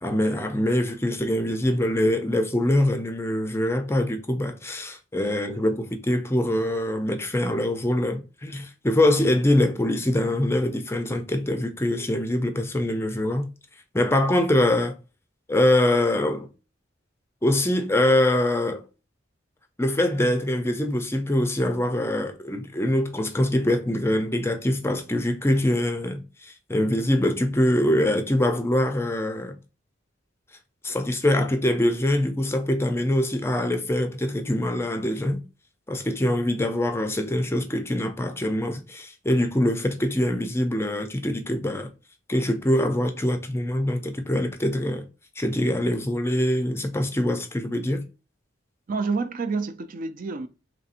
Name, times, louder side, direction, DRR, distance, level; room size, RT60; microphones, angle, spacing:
voice 1, 0.0-13.5 13.9-14.9 15.5-16.5 17.4-18.8 19.8-29.6 30.8-35.4 35.9-41.9 42.3-45.1 45.4-48.0, left 1 dB, 15° left, 0.5 m, -24 dB
voice 2, 48.9-50.5, right 4 dB, 45° right, 0.4 m, -28 dB
4.1 x 3.3 x 2.5 m
head